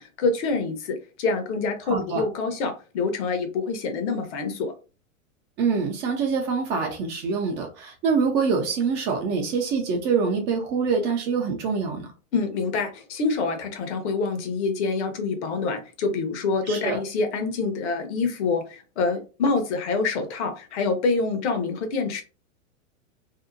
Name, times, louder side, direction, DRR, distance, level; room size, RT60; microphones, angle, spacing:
voice 1, 0.0-4.7 12.3-22.2, left 4 dB, 60° left, 0.9 m, -26 dB
voice 2, 1.9-2.2 5.6-12.1 16.7-17.0, right 5 dB, 25° right, 0.4 m, -25 dB
2.7 x 2.1 x 2.5 m
hypercardioid pair, 120°, 40 cm